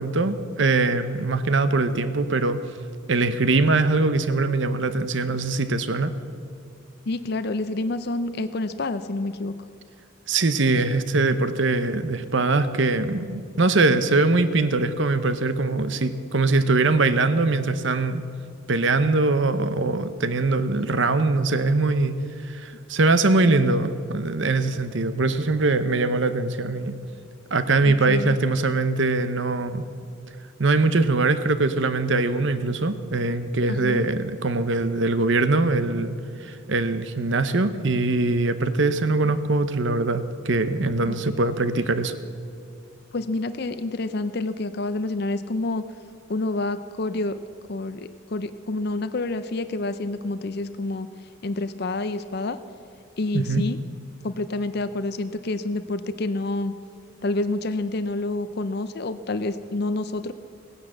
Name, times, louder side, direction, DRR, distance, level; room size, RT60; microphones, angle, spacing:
voice 1, 0.0-2.6 3.1-6.1 10.3-18.2 18.7-22.2 22.5-27.0 27.5-29.8 30.6-42.1 53.3-53.6, right 3 dB, 60° right, 11 dB, 0.8 m, -22 dB
voice 2, 7.1-9.5 20.7-20.9 27.8-28.4 33.7-34.0 41.1-41.2 43.1-45.9 46.3-47.4 47.7-51.1 51.4-52.6 53.2-53.8 54.2-56.7 57.2-60.3, left 2 dB, 50° left, 11 dB, 0.5 m, -28 dB
17.5 x 9.9 x 7.8 m, 2.3 s
head